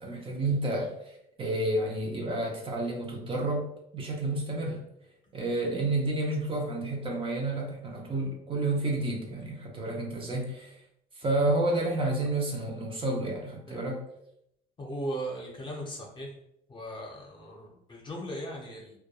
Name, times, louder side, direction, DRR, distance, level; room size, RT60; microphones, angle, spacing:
voice 1, 0.0-3.7 3.9-4.8 5.3-10.7 11.1-14.0, right 2 dB, 30° right, 0 dB, 0.5 m, -30 dB
voice 2, 14.8-16.3 16.7-18.9, right 1 dB, 30° left, -1 dB, 0.7 m, -38 dB
2.2 x 2.2 x 2.8 m, 0.77 s
cardioid pair, 110°, 17 cm